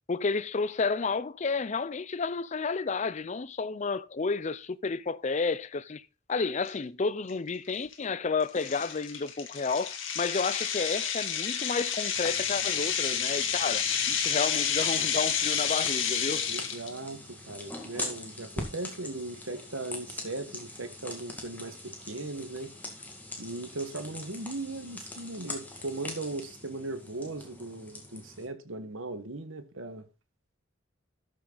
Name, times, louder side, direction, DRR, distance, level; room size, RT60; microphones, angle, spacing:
voice 1, 0.1-6.0 6.3-16.5, left 4 dB, 35° left, 0.5 m, -31 dB
sound 1, 6.6-6.7 7.3-7.5 7.9-8.0 8.6-16.9, left 7 dB, 75° left, 1.9 m, -30 dB
sound 2, 12.2-28.5, left 2 dB, 10° left, 2.1 m, -43 dB
voice 2, 16.5-22.7 23.4-30.1, right 2 dB, 85° right, 1.5 m, -38 dB
13.0 x 6.5 x 3.9 m
head